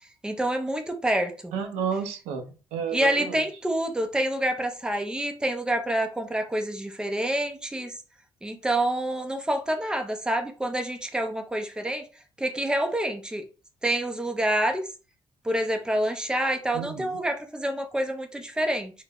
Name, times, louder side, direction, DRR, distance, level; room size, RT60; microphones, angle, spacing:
voice 1, 0.2-1.5 2.9-8.0 8.4-12.0 12.4-13.4 13.8-14.9 15.4-18.9, right 1 dB, 5° right, 0.5 m, -27 dB
voice 2, 1.5-3.4 16.7-17.1, right 6 dB, 85° right, 0.4 m, -31 dB
2.2 x 2.0 x 3.4 m
supercardioid pair, 60°, 11 cm